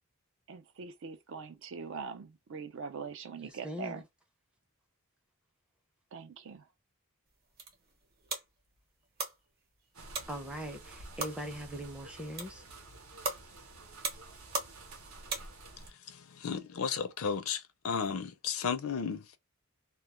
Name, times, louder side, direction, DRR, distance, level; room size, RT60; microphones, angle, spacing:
voice 1, 0.5-4.0 6.1-6.7, right 5 dB, 60° right, 0.4 m, -42 dB
voice 2, 3.4-4.0 10.3-12.6, equal, 5° right, 0.5 m, -41 dB
sound 1, 7.3-15.9, right 3 dB, 45° right, 0.9 m, -42 dB
sound 2, 9.9-15.9, right 2 dB, 75° right, 0.8 m, -51 dB
voice 3, 15.8-19.4, left 6 dB, 75° left, 0.5 m, -34 dB
2.3 x 2.2 x 3.0 m
head